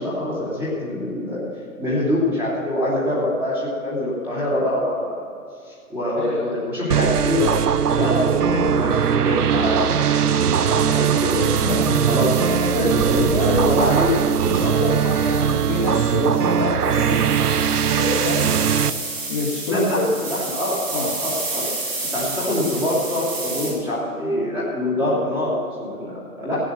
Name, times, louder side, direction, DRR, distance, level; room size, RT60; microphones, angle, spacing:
voice 1, 0.0-1.4 1.8-5.2 5.7-7.5 7.9-14.2 14.8-15.0 19.7-21.7 22.1-26.6, left 1 dB, 5° right, -8 dB, 2.9 m, -25 dB
voice 2, 6.2-6.5 11.7-12.2 13.1-13.7 14.4-17.3 18.0-18.5 19.3-20.3 20.9-21.1, left 3 dB, 20° left, -7 dB, 2.1 m, -26 dB
sound 1, 6.9-18.9, right 8 dB, 75° right, 0.8 m, -20 dB
sound 2, 16.8-23.7, right 3 dB, 20° right, 4.5 m, -30 dB
16.0 x 9.2 x 6.8 m, 2.4 s
hypercardioid pair, 160°, 46 cm